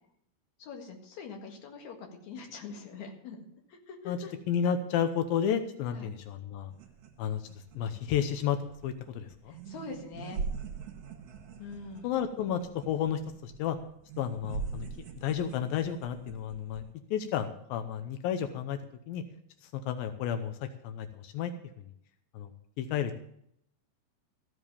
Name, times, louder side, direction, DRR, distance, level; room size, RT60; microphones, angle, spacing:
voice 1, 0.6-4.3 5.9-6.1 9.4-10.4 11.6-12.1, left 4 dB, 55° left, 2 dB, 3.0 m, -44 dB
voice 2, 4.5-6.7 7.2-7.5 7.7-8.6 8.8-9.6 12.0-13.8 14.2-14.9 15.1-16.8 17.1-18.8 19.1-19.2 19.6-20.6 20.8-21.5 21.8-21.9 22.3-22.5 22.8-23.1, left 8 dB, 90° left, 8 dB, 2.6 m, -31 dB
sound 1, 6.7-16.9, right 5 dB, 60° right, 2.4 m, -42 dB
14.5 x 8.0 x 7.0 m, 0.70 s
omnidirectional pair, 4.1 m